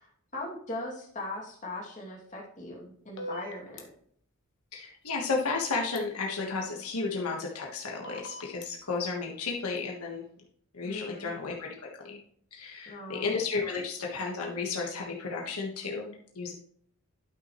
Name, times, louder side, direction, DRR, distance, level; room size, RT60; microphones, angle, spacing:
voice 1, 0.0-3.9 10.8-11.3 12.8-13.4, left 1 dB, 35° left, -3 dB, 2.6 m, -40 dB
sound 1, 3.2-3.8 6.0-6.1 8.0-8.7, left 1 dB, 55° left, 1.2 m, -40 dB
voice 2, 4.7-10.2 10.7-12.2 12.5-16.5, left 4 dB, 80° left, -1 dB, 1.5 m, -33 dB
11.5 x 6.3 x 3.1 m, 0.64 s
head